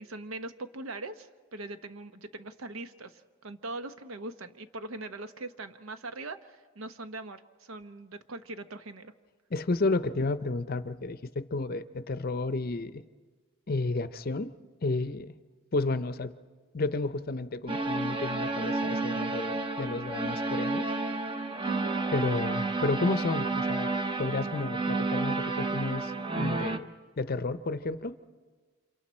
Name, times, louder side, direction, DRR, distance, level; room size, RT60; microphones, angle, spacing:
voice 1, 0.0-9.1 21.6-21.9, right 2 dB, 75° right, 10 dB, 0.9 m, -41 dB
voice 2, 9.5-13.0 13.7-14.5 14.8-15.3 15.7-16.3 16.7-20.9 22.1-23.9 24.2-28.2, left 3 dB, 45° left, 13 dB, 0.6 m, -31 dB
sound 1, 17.7-26.8, right 3 dB, 25° right, 0.7 m, -31 dB
29.5 x 27.0 x 4.3 m, 1.5 s
head